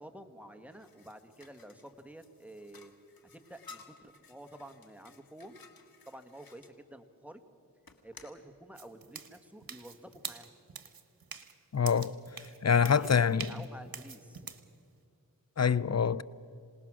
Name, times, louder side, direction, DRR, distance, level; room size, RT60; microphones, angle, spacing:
voice 1, 0.0-2.9 3.3-5.6 6.1-7.4 8.0-10.5 12.9-14.5, right 1 dB, 5° right, 1.8 m, -50 dB
sound 1, 0.7-6.7 7.8-8.4, left 4 dB, 85° left, 1.7 m, -56 dB
sound 2, 8.8-14.7, right 6 dB, 85° right, 1.2 m, -45 dB
voice 2, 11.7-12.2 12.6-13.5 15.6-16.2, left 6 dB, 50° left, 0.6 m, -25 dB
26.5 x 19.0 x 6.3 m
wide cardioid pair, 45°, 35 cm